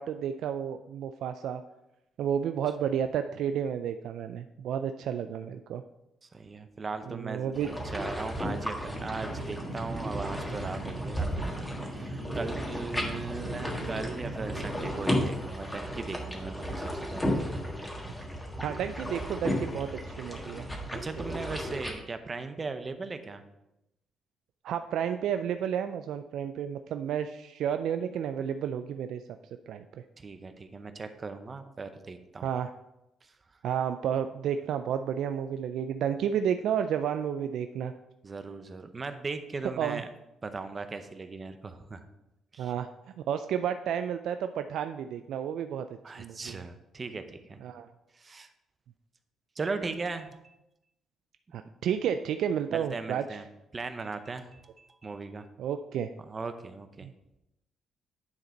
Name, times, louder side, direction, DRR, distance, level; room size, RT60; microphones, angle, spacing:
voice 1, 0.0-1.6 2.2-5.8 7.1-7.7 18.6-20.6 20.9-21.0 21.3-21.4 24.6-29.2 29.7-29.8 32.4-32.7 33.6-37.9 39.8-40.0 42.6-42.9 43.3-45.9 46.2-46.6 47.6-47.9 51.5-53.2 55.6-56.1 57.0-57.1, right 8 dB, 75° right, 8 dB, 0.3 m, -31 dB
voice 2, 6.2-11.5 11.9-17.4 20.9-23.4 30.2-32.5 33.2-33.3 38.2-40.1 40.4-42.0 42.5-42.7 46.0-47.6 48.1-48.5 49.6-50.4 52.7-53.5 53.7-55.5 56.3-57.1, right 4 dB, 35° right, 9 dB, 0.7 m, -38 dB
sound 1, 7.5-21.9, equal, 10° left, 1.6 m, -34 dB
sound 2, 8.9-14.9, right 1 dB, 55° right, 1.9 m, -39 dB
9.7 x 3.9 x 4.4 m, 0.89 s
cardioid pair, 90°, 0 cm